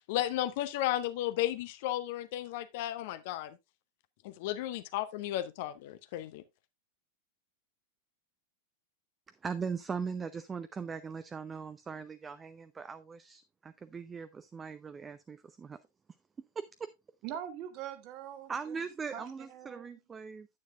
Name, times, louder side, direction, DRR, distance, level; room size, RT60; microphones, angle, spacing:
voice 1, 0.1-3.6 4.2-6.4, left 13 dB, 50° left, 0.7 m, -34 dB
voice 2, 9.3-15.8 16.6-16.9 18.5-20.5, right 5 dB, 15° right, 0.5 m, -40 dB
voice 3, 17.2-18.8 19.1-19.9, right 10 dB, 40° right, 1.4 m, -43 dB
9.6 x 9.2 x 2.4 m
figure-of-eight pair, 90°, 0 cm